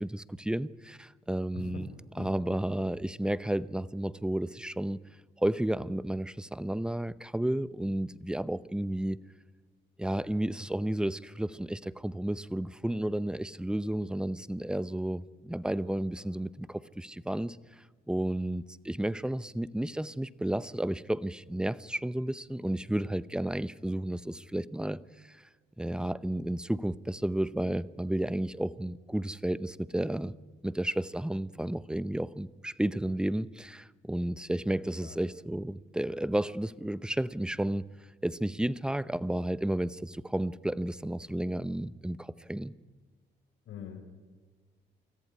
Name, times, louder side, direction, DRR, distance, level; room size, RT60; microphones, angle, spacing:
voice 1, 0.0-1.9 2.2-5.0 5.4-9.2 10.0-17.6 18.1-25.0 25.3-25.4 25.8-30.3 30.6-37.8 38.2-42.7, right 1 dB, 5° right, 0.7 m, -32 dB
voice 2, 1.5-1.9 2.1-2.4 34.7-35.2 43.7-44.2, left 7 dB, 75° left, 4.8 m, -45 dB
26.0 x 14.5 x 9.7 m
cardioid pair, 90°, 20 cm